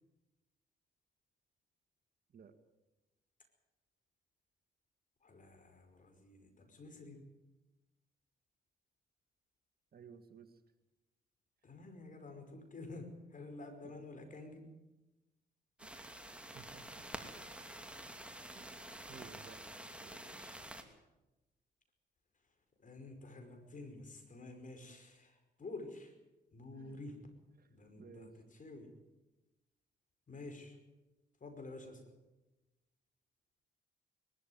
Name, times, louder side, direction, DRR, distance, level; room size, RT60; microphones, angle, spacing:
voice 1, 5.2-7.2 11.6-14.7 20.1-20.6 22.8-26.1 26.5-27.2 27.7-28.9 30.3-30.8 31.4-32.1, left 2 dB, 45° left, 6 dB, 5.1 m, -50 dB
voice 2, 9.9-10.6 12.3-12.4 13.8-14.0 15.8-17.1 18.5-19.7 20.0-20.3 26.8-27.0 27.6-27.7 28.0-28.3, right 6 dB, 55° right, 9 dB, 2.0 m, -57 dB
sound 1, 15.8-20.8, right 1 dB, 5° right, 2.8 m, -49 dB
21.5 x 13.0 x 9.5 m, 1.0 s
supercardioid pair, 60°, 19 cm